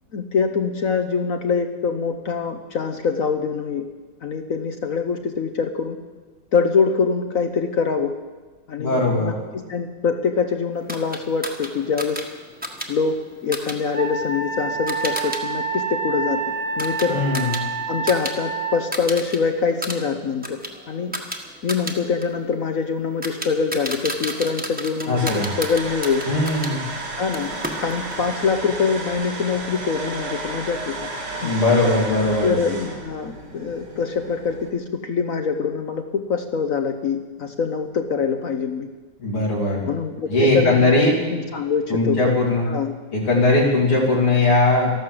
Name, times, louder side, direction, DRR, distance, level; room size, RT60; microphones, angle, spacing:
voice 1, 0.1-3.9 4.2-6.0 6.5-8.1 8.7-12.2 12.9-13.2 13.4-16.4 16.8-17.2 17.9-20.6 20.9-21.1 21.6-26.3 27.2-31.0 31.3-31.5 32.4-38.9 39.8-42.2 42.7-42.9, left 5 dB, 55° left, 7 dB, 1.0 m, -24 dB
voice 2, 8.8-9.3 17.1-17.6 25.1-25.5 26.3-26.8 31.4-32.6 39.2-39.8 40.3-41.1 41.9-42.7 43.1-44.9, left 2 dB, 85° left, -5 dB, 4.0 m, -19 dB
sound 1, 10.9-15.4 15.7-18.4 18.6-19.4 19.7-26.7 27.3-28.2, right 1 dB, 5° right, 1.1 m, -33 dB
Wind instrument woodwind instrument, 13.9-18.8, right 5 dB, 50° right, 2.1 m, -28 dB
sound 2, 25.2-34.7, right 2 dB, 75° right, 3.9 m, -33 dB
13.5 x 12.5 x 7.7 m, 1.3 s
omnidirectional pair, 2.4 m